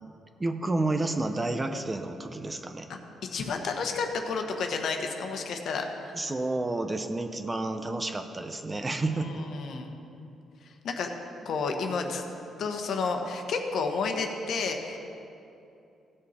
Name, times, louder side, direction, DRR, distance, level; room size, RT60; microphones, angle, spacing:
voice 1, 0.4-2.9 6.1-9.4, right 2 dB, 20° right, 6 dB, 0.7 m, -30 dB
voice 2, 2.9-5.9 9.0-9.9 10.6-11.1 11.4-12.2 12.6-15.0, left 4 dB, 65° left, 4 dB, 1.2 m, -31 dB
16.5 x 6.6 x 4.3 m, 2.7 s
cardioid pair, 90°, 0 cm